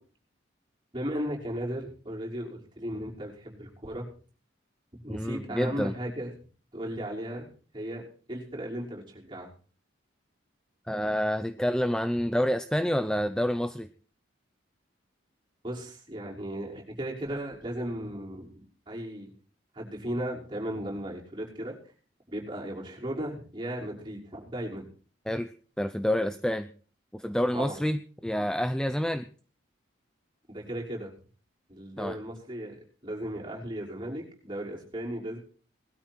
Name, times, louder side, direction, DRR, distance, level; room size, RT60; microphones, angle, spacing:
voice 1, 0.9-4.0 4.9-6.3 6.7-7.5 7.7-8.0 8.3-9.5 15.6-19.3 19.7-21.7 22.3-24.8 27.5-27.8 30.5-31.1 31.7-35.4, right 1 dB, 25° right, -3 dB, 5.8 m, -36 dB
voice 2, 5.1-5.9 10.9-13.9 25.3-25.5 25.8-26.7 27.1-29.3 32.0-32.2, equal, 5° left, 10 dB, 0.6 m, -28 dB
20.5 x 13.0 x 4.6 m, 0.41 s
head